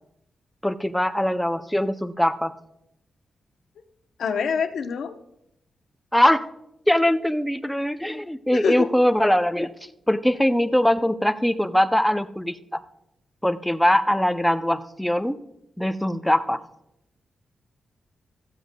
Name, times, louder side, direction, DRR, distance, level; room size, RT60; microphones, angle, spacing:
voice 1, 0.6-2.5 6.1-6.4 6.9-9.7 10.1-12.8 13.4-15.4 15.8-16.6, left 1 dB, 5° left, 9 dB, 0.4 m, -22 dB
voice 2, 4.2-5.1 8.5-8.9, left 6 dB, 70° left, 7 dB, 0.7 m, -25 dB
14.5 x 13.0 x 2.2 m, 0.81 s
wide cardioid pair, 175°, 0 cm